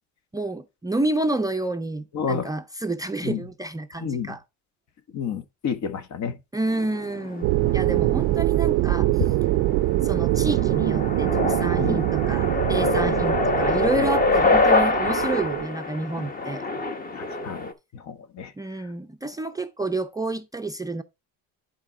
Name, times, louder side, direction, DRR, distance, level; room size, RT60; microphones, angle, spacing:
voice 1, 0.3-4.4 6.5-9.2 10.0-16.6 18.6-21.0, right 2 dB, 10° right, 0.5 m, -29 dB
voice 2, 2.1-2.5 3.2-3.4 4.0-4.3 5.1-6.3 7.6-7.7 11.8-12.1 13.0-13.1 15.0-15.1 17.2-17.7 17.9-18.5, left 7 dB, 55° left, 1.3 m, -30 dB
sound 1, 6.7-17.7, left 3 dB, 25° left, 1.1 m, -26 dB
sound 2, 7.4-15.7, right 17 dB, 60° right, 0.5 m, -23 dB
11.0 x 4.3 x 3.6 m
cardioid pair, 115°, 34 cm